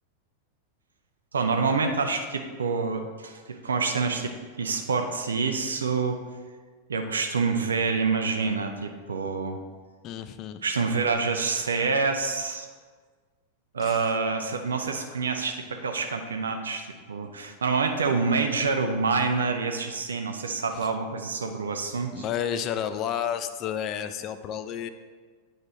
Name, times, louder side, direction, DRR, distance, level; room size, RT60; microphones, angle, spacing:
voice 1, 1.3-6.2 6.9-9.6 10.6-12.7 13.7-22.2, right 4 dB, 70° right, 6 dB, 0.5 m, -27 dB
voice 2, 10.0-10.6 13.8-14.1 20.8-20.9 22.1-24.9, left 9 dB, 35° left, 10 dB, 0.4 m, -31 dB
8.8 x 3.7 x 4.2 m, 1.5 s
figure-of-eight pair, 90°, 0 cm